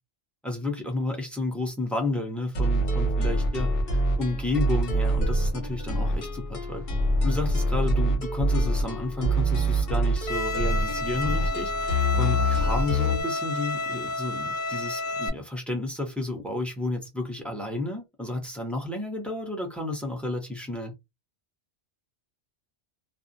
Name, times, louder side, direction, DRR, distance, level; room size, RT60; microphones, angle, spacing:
voice 1, 0.4-6.9 7.2-20.9, left 2 dB, ahead, 0.6 m, -31 dB
sound 1, 2.5-13.2, equal, 60° left, 0.9 m, -25 dB
Bowed string instrument, 10.3-15.3, left 2 dB, 90° left, 0.9 m, -30 dB
2.4 x 2.0 x 2.6 m
omnidirectional pair, 1.1 m